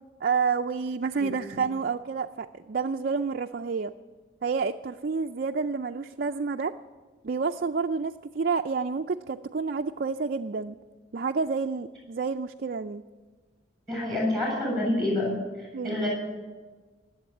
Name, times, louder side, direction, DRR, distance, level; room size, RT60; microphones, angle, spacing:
voice 1, 0.2-3.9 4.4-6.7 7.2-10.8 11.1-13.0 15.7-16.0, right 5 dB, 50° right, 5 dB, 0.4 m, -29 dB
voice 2, 13.9-16.1, left 1 dB, ahead, -1 dB, 7.2 m, -28 dB
19.0 x 8.0 x 9.2 m, 1.4 s
head